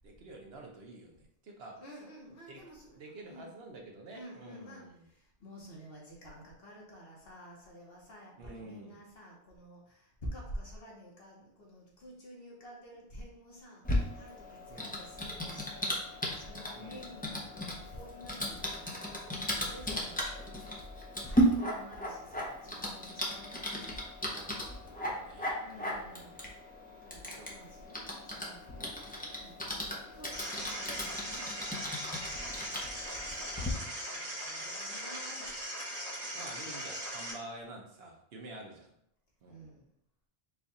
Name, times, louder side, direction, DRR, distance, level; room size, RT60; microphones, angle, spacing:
voice 1, 0.0-1.8 2.5-2.6 3.0-5.1 8.3-9.0 14.7-15.0 16.7-17.1 20.0-20.1 25.0-26.4 31.3-31.8 36.3-38.9 39.4-39.7, right 2 dB, 70° right, 1 dB, 1.1 m, -49 dB
voice 2, 1.8-3.5 4.1-20.9 21.2-24.1 25.6-31.4 32.4-33.4 34.0-35.5 39.5-39.8, equal, 65° left, -3 dB, 1.4 m, -50 dB
Typing, 13.8-33.7, equal, 10° left, 0.6 m, -36 dB
sound 1, 30.3-37.3, equal, 20° right, 1.4 m, -40 dB
4.6 x 2.4 x 4.0 m, 0.74 s
omnidirectional pair, 1.1 m